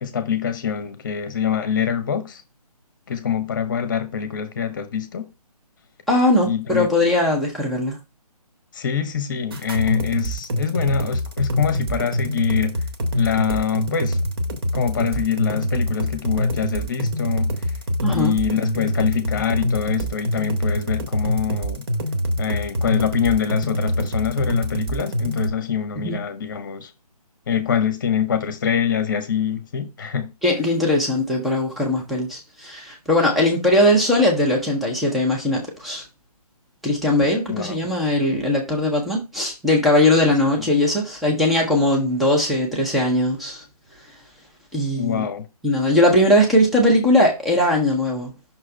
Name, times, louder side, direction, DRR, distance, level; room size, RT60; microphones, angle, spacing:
voice 1, 0.0-2.4 3.1-5.3 6.4-6.9 8.7-12.8 13.1-14.2 14.7-17.6 18.1-21.8 22.4-26.9 27.5-30.3 37.5-37.7 40.6-40.7 44.9-45.5, left 8 dB, 30° left, 0.9 m, -24 dB
voice 2, 6.1-8.0 18.0-18.3 26.0-26.2 30.4-36.0 36.8-43.6 44.7-45.3 45.6-48.3, left 1 dB, ahead, 0.6 m, -19 dB
sound 1, 9.5-25.5, equal, 40° right, 1.1 m, -24 dB
5.9 x 3.2 x 5.2 m
figure-of-eight pair, 150°, 20 cm